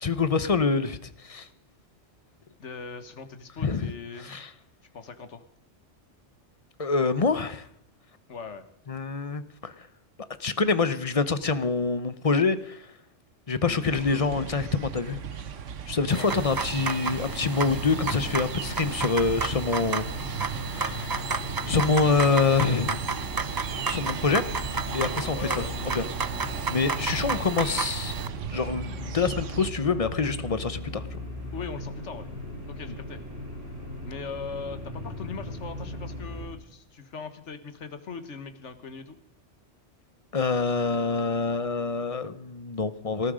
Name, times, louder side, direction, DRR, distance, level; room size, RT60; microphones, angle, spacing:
voice 1, 0.0-1.5 3.6-3.9 4.2-4.5 6.8-7.7 8.9-9.7 10.4-12.8 13.5-15.2 15.9-23.0 23.9-24.4 24.9-25.6 25.9-26.0 26.7-28.1 28.5-31.2 40.3-43.3, left 4 dB, 30° left, 13 dB, 0.9 m, -26 dB
voice 2, 2.6-4.4 4.9-5.4 8.3-8.6 13.5-13.8 16.1-16.3 25.3-25.8 31.5-32.3 32.7-33.2 34.1-39.2, left 5 dB, 75° left, 9 dB, 1.7 m, -40 dB
sound 1, 13.9-29.7, right 7 dB, 90° right, 1.3 m, -37 dB
sound 2, 16.1-28.3, right 4 dB, 35° right, 0.3 m, -32 dB
sound 3, 17.2-36.5, left 1 dB, 55° right, 7.6 m, -38 dB
18.5 x 14.0 x 5.0 m, 0.74 s
omnidirectional pair, 1.2 m